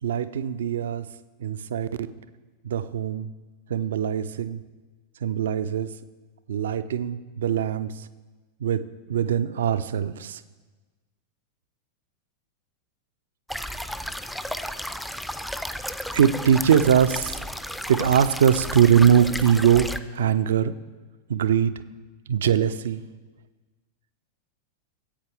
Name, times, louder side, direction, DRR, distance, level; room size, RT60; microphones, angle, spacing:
voice 1, 0.0-1.1 1.4-2.1 2.6-3.3 3.7-4.6 5.2-5.9 6.5-8.1 8.6-10.4 16.1-17.4 17.9-20.7 21.3-21.7 22.3-23.0, right 8 dB, 60° right, 14 dB, 0.4 m, -22 dB
sound 1, 13.5-20.0, equal, ahead, 0.4 m, -33 dB
14.5 x 8.6 x 3.4 m, 1.3 s
figure-of-eight pair, 90°, 0 cm